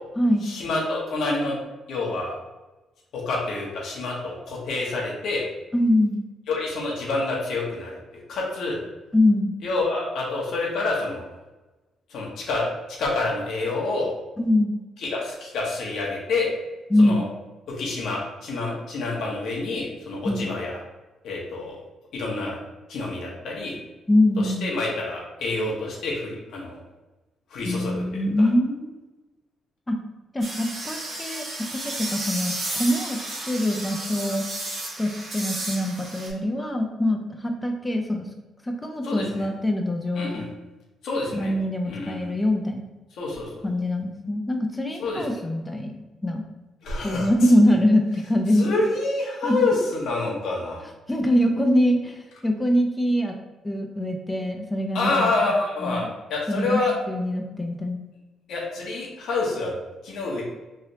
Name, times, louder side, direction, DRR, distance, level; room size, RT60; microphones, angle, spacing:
voice 1, 0.4-1.6 1.9-2.3 3.1-5.5 6.5-7.9 8.3-8.8 9.6-11.2 12.1-12.7 13.0-14.1 15.0-16.5 17.0-17.3 17.8-20.8 21.2-21.7 22.1-22.6 22.9-23.8 24.4-26.8 27.5-28.2 39.0-39.4 40.1-40.5 41.0-41.5 41.8-42.3 43.2-43.6 45.0-45.2 46.8-47.3 48.5-50.9 54.9-56.0 56.3-56.9 58.5-59.7 60.0-60.4, left 3 dB, 75° left, -3 dB, 0.9 m, -27 dB
voice 2, 5.7-6.2 9.1-9.5 14.4-14.8 16.9-17.2 20.2-20.5 24.1-24.7 27.6-28.9 29.9-30.0 30.3-33.2 33.5-34.4 35.0-38.3 38.6-40.4 41.3-42.8 43.6-46.4 47.0-48.7 49.4-49.6 51.1-53.4 53.6-55.3 55.8-56.1 56.5-56.8 57.1-58.0, left 1 dB, 15° left, 3 dB, 0.4 m, -23 dB
sound 1, 30.4-36.3, right 2 dB, 50° right, 1.2 m, -33 dB
3.2 x 2.7 x 2.7 m, 1.1 s
cardioid pair, 90°, 0 cm